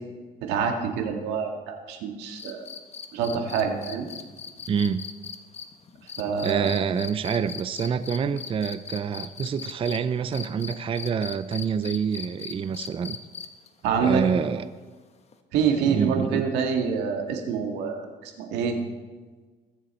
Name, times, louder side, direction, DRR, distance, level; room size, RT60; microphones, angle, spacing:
voice 1, 0.4-2.7 3.1-4.1 6.2-6.7 13.8-14.2 15.5-18.8, right 6 dB, 90° right, 3 dB, 1.9 m, -26 dB
sound 1, 2.4-10.0 10.3-13.7 15.3-15.4, left 6 dB, 40° left, 1.1 m, -38 dB
voice 2, 4.7-5.1 6.4-13.2 14.0-14.6 15.8-16.5, right 7 dB, 30° right, 12 dB, 0.5 m, -27 dB
21.0 x 7.0 x 4.3 m, 1.4 s
cardioid pair, 110°, 17 cm